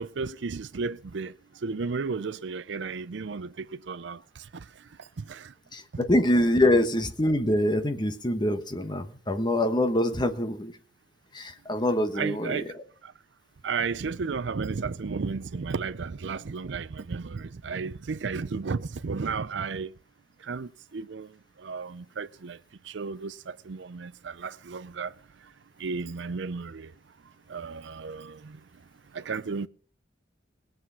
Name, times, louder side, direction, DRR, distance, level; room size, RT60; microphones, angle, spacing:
voice 1, 0.0-1.3 1.6-4.6 5.2-5.5 12.1-12.7 13.0-13.1 13.6-19.9 20.4-21.3 21.6-22.6 22.8-25.1 25.8-26.9 27.5-28.6 29.1-29.7, right 4 dB, 65° right, 0.5 m, -33 dB
voice 2, 5.7-10.7 11.3-12.7, left 1 dB, 25° left, 1.2 m, -25 dB
20.0 x 7.7 x 5.6 m
head